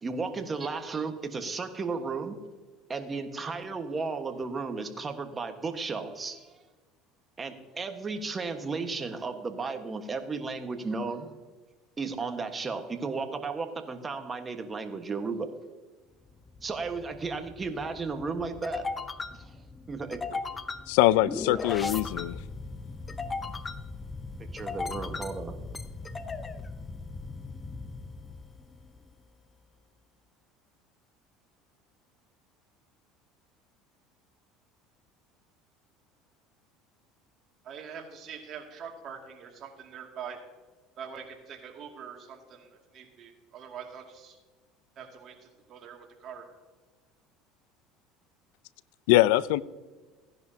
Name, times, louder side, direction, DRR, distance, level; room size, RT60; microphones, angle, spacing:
voice 1, 0.0-2.4 2.9-6.5 7.4-11.3 12.0-15.5 16.6-19.1 19.3-19.5 19.9-20.2 24.5-25.6, right 4 dB, 25° right, 1.4 m, -34 dB
sound 1, 16.3-29.0, left 3 dB, 20° left, 0.6 m, -38 dB
voice 2, 20.9-22.4 49.1-49.6, left 16 dB, 80° left, 0.4 m, -22 dB
voice 3, 37.6-40.4 41.0-44.4 45.0-46.5, right 7 dB, 50° right, 2.4 m, -44 dB
16.0 x 10.5 x 2.8 m
supercardioid pair, 100°, 0 cm